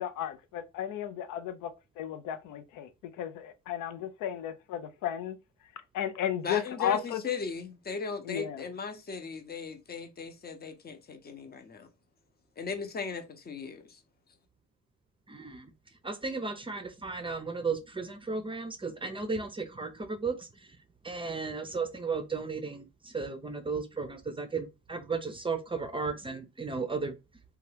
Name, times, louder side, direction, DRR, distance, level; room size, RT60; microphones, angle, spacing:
voice 1, 0.0-5.4 5.9-7.2 8.2-8.6, left 10 dB, 90° left, 0.5 m, -34 dB
voice 2, 6.4-11.9 12.6-14.0, left 5 dB, 35° left, 0.6 m, -37 dB
voice 3, 15.3-15.7 16.0-20.7 21.0-27.2, right 4 dB, 15° right, 0.5 m, -35 dB
2.8 x 2.3 x 3.2 m
cardioid pair, 90°, 30 cm